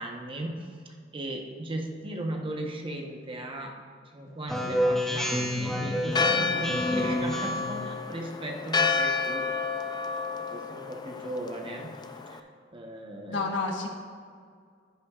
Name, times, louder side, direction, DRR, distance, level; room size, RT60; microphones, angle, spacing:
voice 1, 0.0-3.7 4.1-9.5 10.5-12.4 12.7-13.5, right 1 dB, 30° right, 1 dB, 0.9 m, -37 dB
Speech synthesizer, 4.5-7.8, equal, ahead, 0.8 m, -29 dB
Church bell, 6.1-12.4, left 4 dB, 20° left, 0.4 m, -30 dB
voice 2, 6.2-6.6 13.3-13.9, left 3 dB, 85° left, 2 dB, 1.2 m, -31 dB
10.5 x 10.0 x 2.4 m, 2.1 s
head